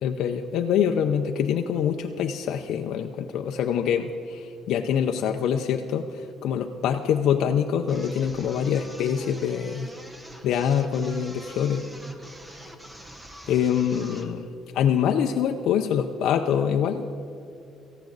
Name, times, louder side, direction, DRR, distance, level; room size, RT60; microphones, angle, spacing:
voice 1, 0.0-9.9 10.4-11.9 13.5-14.5 14.7-17.0, left 8 dB, 65° left, 4 dB, 0.5 m, -25 dB
sound 1, 7.9-14.4, equal, 10° right, 1.0 m, -45 dB
18.0 x 14.5 x 3.9 m, 2.6 s
cardioid pair, 140°, 0 cm